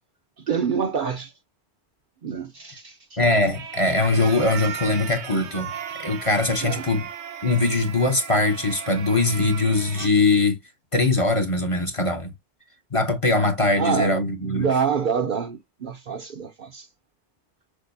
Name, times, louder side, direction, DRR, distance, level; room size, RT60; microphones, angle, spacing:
voice 1, 0.5-1.3 2.2-3.2 6.6-6.8 13.8-14.2 14.5-16.9, right 6 dB, 55° right, 0.6 m, -26 dB
voice 2, 3.2-5.7 6.0-7.1 7.4-10.6 10.9-12.3 12.9-14.7, left 2 dB, 35° left, 0.7 m, -21 dB
sound 1, 3.5-10.1, right 8 dB, 85° right, 1.0 m, -36 dB
6.2 x 2.1 x 2.5 m
omnidirectional pair, 1.1 m